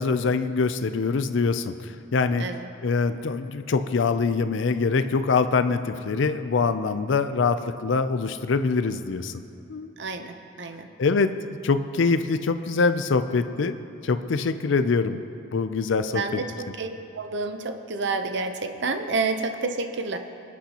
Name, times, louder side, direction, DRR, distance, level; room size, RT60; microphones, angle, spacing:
voice 1, 0.0-2.5 2.8-9.3 9.7-9.9 11.0-13.8 14.0-15.2 15.5-16.4, left 4 dB, 60° left, 10 dB, 0.4 m, -24 dB
voice 2, 10.0-10.9 16.1-20.2, right 3 dB, 60° right, 7 dB, 0.7 m, -29 dB
24.5 x 8.5 x 2.9 m, 2.9 s
head